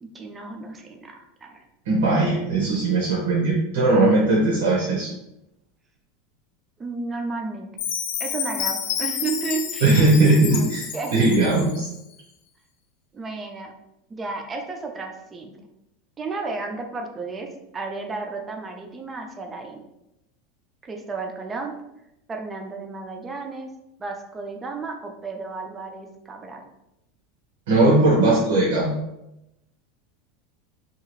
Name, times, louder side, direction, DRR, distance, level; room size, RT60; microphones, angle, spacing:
voice 1, 0.0-1.6 6.8-7.7 8.2-10.0 10.5-11.1 13.1-13.7 14.1-15.5 16.2-17.5 17.7-19.8 20.8-21.7 22.3-23.7 24.0-26.7, right 4 dB, 15° right, 3 dB, 0.3 m, -33 dB
voice 2, 1.9-5.1 9.8-10.9 11.1-11.9 27.7-29.0, right 2 dB, 85° right, -5 dB, 0.8 m, -19 dB
Chime, 7.8-11.9, left 8 dB, 55° left, 0.4 m, -30 dB
2.7 x 2.3 x 3.0 m, 0.87 s
supercardioid pair, 165°, 0 cm